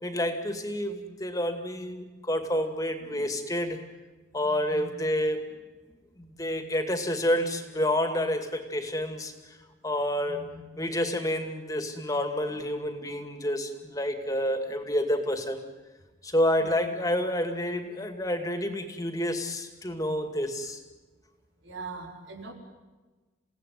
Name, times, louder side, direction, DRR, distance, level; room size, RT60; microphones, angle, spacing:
voice 1, 0.0-3.8 4.3-5.5 6.2-9.6 9.8-10.5 10.8-15.6 16.2-20.8, left 1 dB, 20° left, 7 dB, 2.3 m, -29 dB
voice 2, 4.4-4.9 10.3-10.6 16.6-16.7 21.6-22.5, right 3 dB, 90° right, 2 dB, 4.6 m, -42 dB
29.0 x 17.5 x 9.5 m, 1.2 s
head